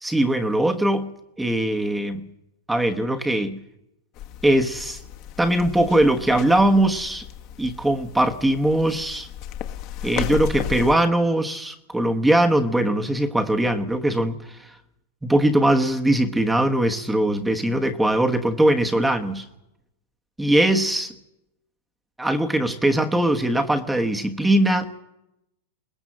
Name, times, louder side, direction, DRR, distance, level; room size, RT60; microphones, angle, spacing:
voice 1, 0.0-1.1 1.4-2.3 2.7-3.6 4.4-5.0 5.4-7.2 7.6-9.3 10.0-14.7 15.2-19.5 20.4-21.1 22.2-24.9, right 1 dB, 5° right, 5 dB, 1.2 m, -21 dB
sound 1, 4.2-11.0, left 11 dB, 45° left, 1.4 m, -34 dB
22.0 x 18.5 x 7.7 m, 0.91 s
hypercardioid pair, 135°, 0 cm